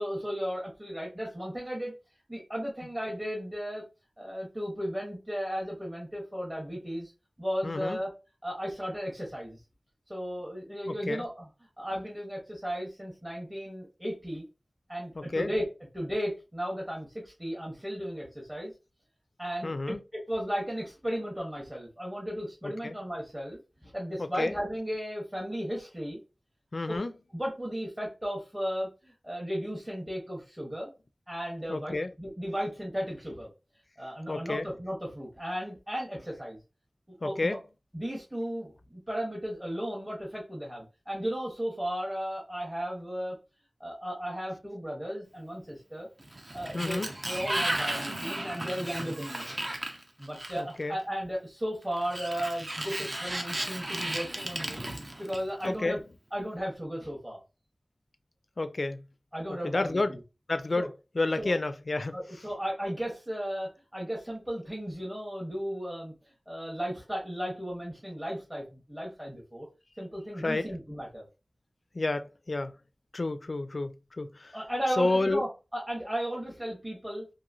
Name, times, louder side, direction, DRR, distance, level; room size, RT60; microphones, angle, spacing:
voice 1, 0.0-1.9 2.3-3.8 4.2-7.1 7.4-8.1 8.4-9.6 10.1-11.5 11.8-14.4 14.9-15.7 15.9-18.7 19.4-26.2 26.9-27.0 27.3-30.9 31.3-33.5 34.0-36.6 37.2-37.6 37.9-43.4 43.8-46.1 46.5-49.5 50.2-56.0 56.3-57.4 59.3-60.2 60.7-60.9 61.4-61.5 62.1-66.1 66.5-69.7 70.0-71.2 74.5-77.3, equal, 20° right, 1.1 m, -35 dB
voice 2, 7.6-8.0 10.9-11.2 15.2-15.5 19.6-20.0 22.6-23.0 24.2-24.5 26.7-27.1 31.7-32.1 34.3-34.7 37.2-37.6 46.7-47.1 50.6-50.9 55.6-56.0 58.6-59.0 59.5-60.2 60.5-62.2 70.4-70.7 71.9-72.7 73.1-74.6 75.0-75.4, left 2 dB, 60° left, 0.3 m, -30 dB
Sliding door, 46.2-50.8 52.0-55.7, right 1 dB, 40° right, 0.5 m, -34 dB
2.9 x 2.6 x 2.5 m
wide cardioid pair, 65°, 0 cm